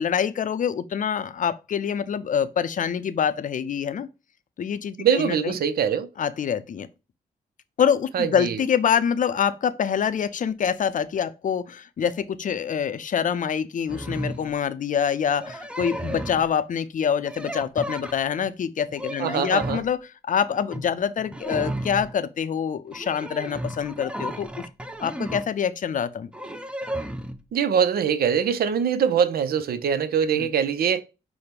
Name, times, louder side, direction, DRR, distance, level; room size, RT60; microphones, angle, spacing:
voice 1, 0.0-4.1 4.6-5.5 6.2-6.9 7.8-20.0 20.2-24.5 25.0-26.3 30.3-30.5, left 7 dB, 50° left, 0.5 m, -25 dB
voice 2, 5.0-6.1 8.1-8.6 19.2-19.8 27.5-31.0, right 7 dB, 65° right, 0.5 m, -23 dB
sound 1, 13.9-14.5 15.3-16.5 17.3-18.5 18.9-19.9 20.5-20.9 21.2-22.2 22.9-25.5 26.3-27.4, right 1 dB, 5° right, 0.6 m, -34 dB
5.0 x 2.1 x 4.3 m
supercardioid pair, 45°, 17 cm